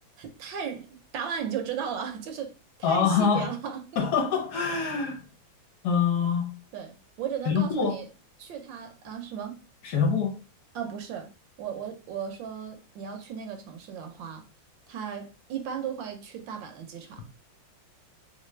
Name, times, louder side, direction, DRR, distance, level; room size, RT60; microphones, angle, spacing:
voice 1, 0.2-2.5 2.8-3.8 6.7-8.0 8.4-9.6 10.7-11.3 11.6-14.4 14.9-17.2, right 7 dB, 75° right, 1.4 m, -36 dB
voice 2, 2.8-3.5 4.0-5.2 5.8-6.5 7.5-8.0 9.8-10.4, left 6 dB, 65° left, 1.1 m, -25 dB
3.6 x 3.3 x 3.1 m
omnidirectional pair, 2.2 m